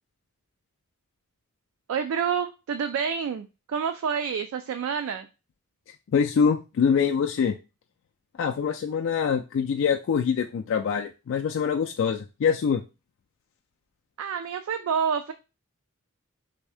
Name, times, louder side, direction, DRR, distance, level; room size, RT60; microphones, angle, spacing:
voice 1, 1.9-5.3 14.2-15.3, right 7 dB, 65° right, 8 dB, 0.3 m, -28 dB
voice 2, 6.1-7.5 8.4-12.8, left 6 dB, 60° left, 4 dB, 0.3 m, -24 dB
3.4 x 2.7 x 3.3 m, 0.29 s
head